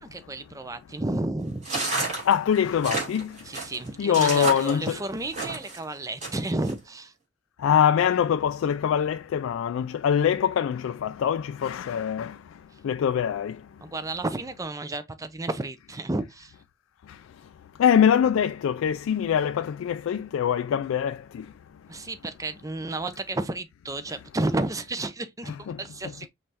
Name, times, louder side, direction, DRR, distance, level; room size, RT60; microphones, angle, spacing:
voice 1, 0.0-1.7 3.4-7.1 13.8-16.5 21.9-25.5 25.8-26.3, right 2 dB, 15° right, 0.5 m, -32 dB
sound 1, 1.6-5.8 6.2-6.7, right 2 dB, 40° right, 2.9 m, -30 dB
voice 2, 2.3-3.3 4.0-5.0 7.6-12.3 12.8-13.5 17.8-21.2 25.7-25.8, left 8 dB, 75° left, 0.3 m, -23 dB
5.5 x 3.2 x 2.8 m
head